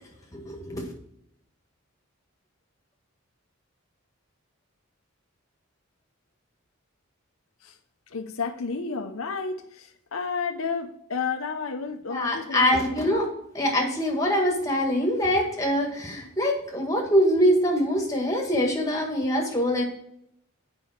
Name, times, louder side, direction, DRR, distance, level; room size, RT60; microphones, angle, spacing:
voice 1, 0.3-0.8 12.1-13.3 13.5-19.8, equal, 15° left, 1 dB, 1.8 m, -24 dB
voice 2, 8.1-13.0, left 5 dB, 75° left, 5 dB, 0.8 m, -31 dB
8.2 x 5.3 x 4.4 m, 0.73 s
head